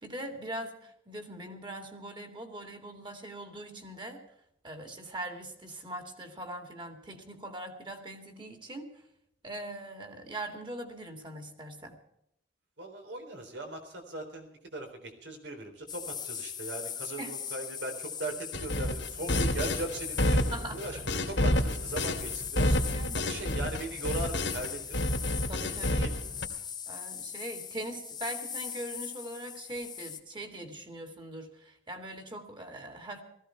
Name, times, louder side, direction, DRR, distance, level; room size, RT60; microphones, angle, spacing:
voice 1, 0.0-4.2 4.6-8.9 9.4-11.9 17.2-17.3 20.5-21.2 22.9-23.3 25.5-26.1 26.9-33.2, right 1 dB, 25° right, 5 dB, 2.4 m, -41 dB
voice 2, 12.8-25.1 25.8-26.1, right 2 dB, 80° right, 4 dB, 3.9 m, -39 dB
sound 1, 15.9-30.2, left 8 dB, 25° left, 1.2 m, -40 dB
sound 2, 18.5-24.7 24.9-26.5, left 1 dB, 80° left, 2.3 m, -29 dB
18.0 x 15.5 x 4.6 m, 0.76 s
head